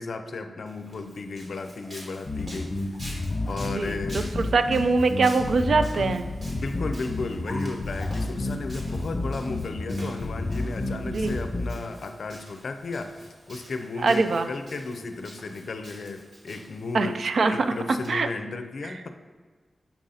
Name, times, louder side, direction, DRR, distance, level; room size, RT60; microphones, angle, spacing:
voice 1, 0.0-4.3 6.5-17.2 17.5-19.1, left 3 dB, 65° left, 7 dB, 0.5 m, -34 dB
Walk footsteps, 0.7-18.1, equal, 45° right, 1.5 m, -47 dB
sound 1, 2.2-11.7, left 2 dB, 35° left, 1.1 m, -30 dB
voice 2, 3.8-6.3 11.1-11.3 14.0-14.5 16.9-18.3, right 4 dB, 70° right, 9 dB, 0.3 m, -23 dB
7.0 x 2.6 x 5.5 m, 1.5 s
wide cardioid pair, 135°, 0 cm